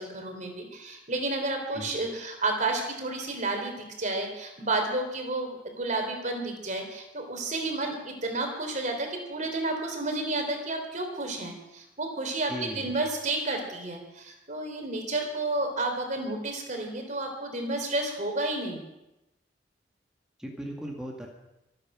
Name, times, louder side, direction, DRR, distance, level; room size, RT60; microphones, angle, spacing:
voice 1, 0.0-18.8, right 2 dB, 45° right, 4 dB, 3.4 m, -31 dB
voice 2, 12.5-13.0 20.4-21.3, equal, 5° right, -1 dB, 2.0 m, -37 dB
25.0 x 9.3 x 6.2 m, 0.94 s
head